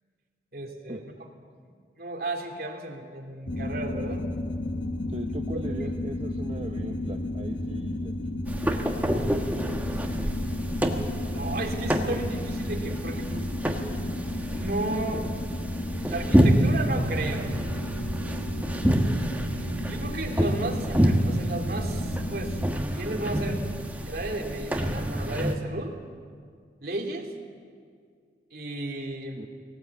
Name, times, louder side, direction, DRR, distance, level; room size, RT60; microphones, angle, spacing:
voice 1, 0.5-1.1 1.6-4.3 9.9-10.0 11.3-13.5 14.6-15.2 16.1-17.5 19.9-23.6 24.0-25.9 26.8-27.3 28.5-29.4, right 2 dB, 55° right, 1 dB, 2.7 m, -34 dB
sound 1, 3.5-22.7, left 1 dB, 85° left, 1.2 m, -33 dB
voice 2, 5.1-8.2 29.3-29.5, right 1 dB, 35° right, 2 dB, 0.9 m, -38 dB
sound 2, 8.5-25.5, equal, 10° right, 1.2 m, -28 dB
20.5 x 18.0 x 8.4 m, 2.1 s
head